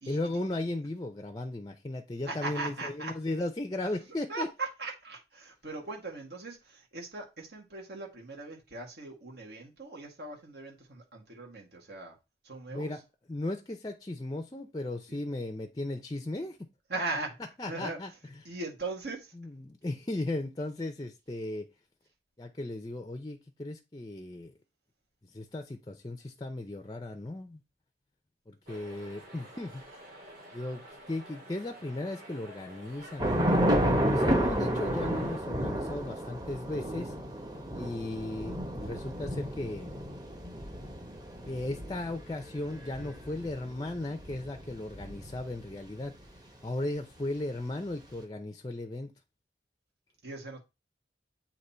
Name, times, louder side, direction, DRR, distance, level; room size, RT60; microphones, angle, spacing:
voice 1, 0.1-4.5 12.7-13.0 13.3-16.6 17.6-18.5 19.3-21.7 22.4-24.5 25.2-27.6 28.5-29.8 30.5-33.6 34.1-37.1 37.7-40.0 41.5-46.1 46.6-49.1, left 2 dB, 20° left, 0.5 m, -36 dB
voice 2, 2.3-3.1 4.3-12.1 12.4-12.9 15.1-15.2 16.9-17.4 17.7-18.0 18.5-19.3 50.2-50.6, right 3 dB, 65° right, 2.0 m, -39 dB
sound 1, 28.7-35.4, right 1 dB, 50° right, 2.9 m, -49 dB
Thunder / Rain, 33.2-45.7, equal, 25° right, 1.1 m, -31 dB
8.1 x 3.0 x 4.3 m
head